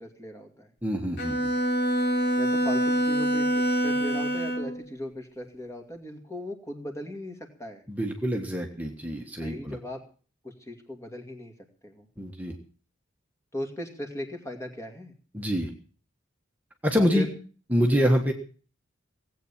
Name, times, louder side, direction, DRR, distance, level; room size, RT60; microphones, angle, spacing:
voice 1, 0.0-0.7 2.4-7.8 9.4-10.0 10.4-11.5 11.8-12.1 13.5-15.1 17.0-17.3, equal, 15° left, 5 dB, 2.4 m, -38 dB
voice 2, 0.8-1.5 7.9-9.8 12.2-12.5 15.3-15.7 16.8-17.3 17.7-18.3, equal, 10° right, 2 dB, 1.4 m, -26 dB
Bowed string instrument, 1.2-4.8, equal, 55° left, 3.6 m, -25 dB
18.5 x 8.5 x 7.3 m, 0.41 s
head